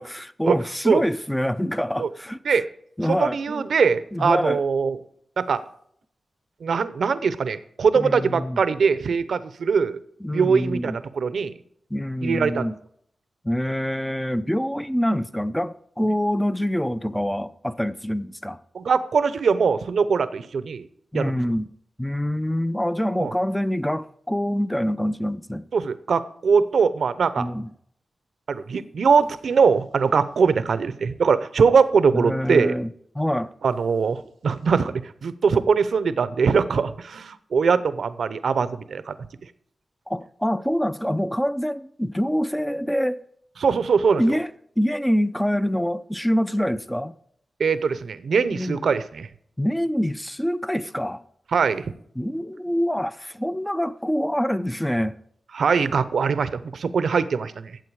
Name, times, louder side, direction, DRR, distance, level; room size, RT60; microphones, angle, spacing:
voice 1, 0.0-2.4 3.0-3.6 4.1-4.6 7.9-8.6 10.2-11.0 11.9-12.7 13.4-18.6 21.1-21.7 22.0-25.6 27.4-27.7 32.1-32.9 33.1-33.5 40.1-43.3 44.2-44.5 44.8-47.1 48.5-48.8 49.6-51.2 52.2-55.2, equal, 5° left, 0.5 m, -25 dB
voice 2, 3.1-5.0 5.4-5.6 6.6-10.0 10.3-11.5 12.2-12.7 18.7-20.9 21.1-21.3 23.2-23.3 25.7-27.5 28.5-32.7 33.6-39.1 43.6-44.4 47.6-49.3 51.5-51.8 55.5-57.7, right 5 dB, 80° right, 0.7 m, -22 dB
14.0 x 7.7 x 4.8 m
cardioid pair, 70°, 0 cm